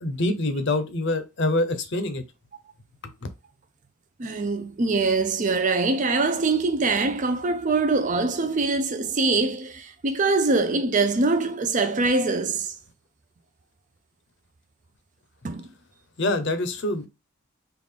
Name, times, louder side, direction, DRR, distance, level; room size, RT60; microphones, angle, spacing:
voice 1, 0.0-2.2 3.0-3.1 16.2-17.1, left 2 dB, 50° left, 0.6 m, -25 dB
voice 2, 4.2-12.8 15.4-15.6, right 3 dB, 35° right, 0.4 m, -23 dB
3.7 x 2.4 x 3.3 m
head